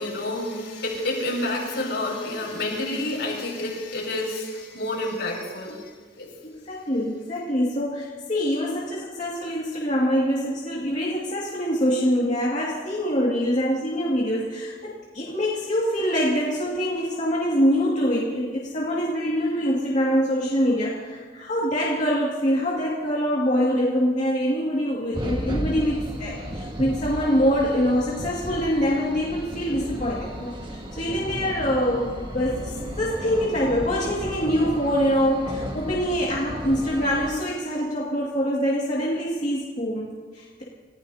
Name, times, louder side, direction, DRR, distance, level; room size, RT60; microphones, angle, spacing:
voice 1, 0.0-6.3, left 1 dB, 70° left, -3 dB, 6.0 m, -29 dB
voice 2, 6.4-40.6, equal, 45° left, -6 dB, 2.2 m, -24 dB
sound 1, 25.1-37.3, equal, 30° right, 1.6 m, -34 dB
29.5 x 15.5 x 2.8 m, 1.5 s
head